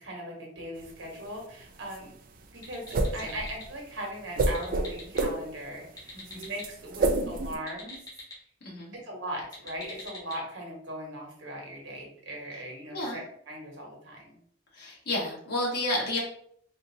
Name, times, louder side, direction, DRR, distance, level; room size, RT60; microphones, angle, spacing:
voice 1, 0.0-2.1 2.5-2.8 3.1-8.0 9.0-14.4, right 1 dB, 85° right, -1 dB, 1.2 m, -39 dB
sound 1, 0.8-7.6, right 2 dB, 50° right, 0.4 m, -29 dB
sound 2, 2.6-3.7 4.3-5.2 5.8-6.7 7.5-8.4 9.4-10.4, left 2 dB, 20° left, 1.0 m, -45 dB
voice 2, 6.1-6.5 8.6-8.9 12.9-13.2 14.7-16.2, left 1 dB, 55° left, -4 dB, 1.3 m, -31 dB
3.8 x 2.6 x 2.7 m, 0.65 s
head